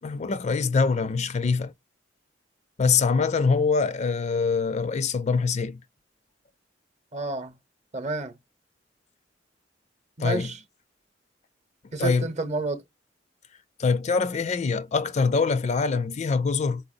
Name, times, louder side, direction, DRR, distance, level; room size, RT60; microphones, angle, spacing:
voice 1, 0.0-1.7 2.8-5.8 10.2-10.5 12.0-12.3 13.8-16.8, left 4 dB, 40° left, 0.4 m, -24 dB
voice 2, 7.1-7.5 7.9-8.4 10.2-10.6 11.9-12.8, right 2 dB, 40° right, 0.8 m, -30 dB
4.3 x 4.0 x 2.5 m
head